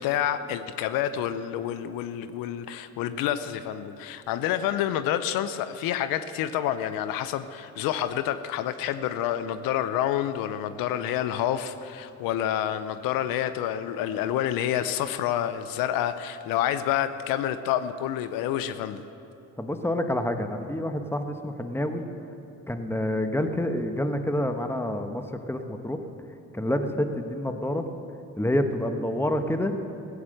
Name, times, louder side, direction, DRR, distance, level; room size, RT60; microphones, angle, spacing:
voice 1, 0.0-19.0, left 11 dB, 85° left, 12 dB, 0.6 m, -28 dB
voice 2, 19.6-22.0 22.7-26.0 26.5-27.8 28.4-29.7, left 1 dB, 5° left, 6 dB, 1.2 m, -28 dB
16.0 x 8.7 x 6.5 m, 2.8 s
supercardioid pair, 65°, 34 cm